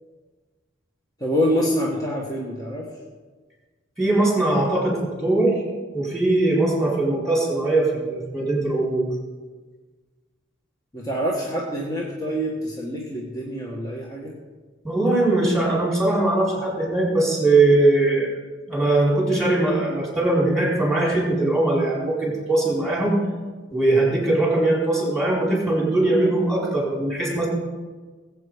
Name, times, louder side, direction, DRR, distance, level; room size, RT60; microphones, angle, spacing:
voice 1, 1.2-2.9 10.9-14.3, equal, 20° left, -2 dB, 1.5 m, -26 dB
voice 2, 4.0-5.6 5.9-9.1 14.8-18.3 18.7-23.2 23.7-27.5, right 2 dB, ahead, -4 dB, 4.6 m, -20 dB
19.5 x 8.3 x 5.1 m, 1.4 s
head